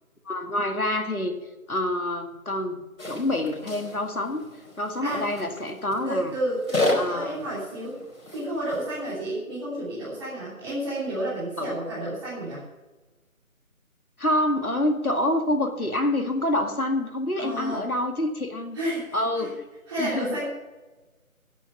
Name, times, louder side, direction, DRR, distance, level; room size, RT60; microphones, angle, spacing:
voice 1, 0.3-1.3 1.7-4.4 4.8-6.3 6.9-7.3 11.6-11.7 14.2-18.8 19.1-19.5 20.0-20.3, left 1 dB, 90° left, 4 dB, 2.2 m, -27 dB
sound 1, 3.0-9.0, left 2 dB, 65° left, 5.0 m, -33 dB
voice 2, 6.0-8.0 8.3-12.6 17.4-17.9 18.7-19.5 19.9-20.4, right 1 dB, 20° right, -10 dB, 3.4 m, -31 dB
11.0 x 10.5 x 7.0 m, 1.2 s
figure-of-eight pair, 160°, 43 cm